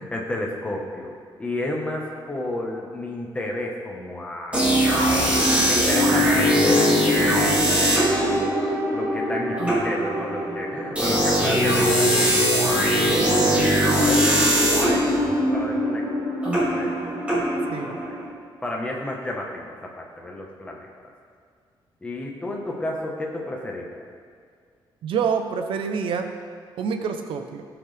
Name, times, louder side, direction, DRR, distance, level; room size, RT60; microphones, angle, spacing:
voice 1, 0.0-5.1 5.7-7.4 7.7-8.6 8.9-13.1 13.5-16.2 16.5-17.5 17.8-18.1 18.6-20.9 22.0-24.0, left 1 dB, 15° left, -1 dB, 1.3 m, -32 dB
sound 1, 4.5-18.2, equal, 15° right, 2.5 m, -21 dB
voice 2, 25.0-26.3 26.8-27.6, right 6 dB, 90° right, 6 dB, 0.8 m, -26 dB
17.5 x 6.1 x 3.5 m, 2.1 s
wide cardioid pair, 180°, 9 cm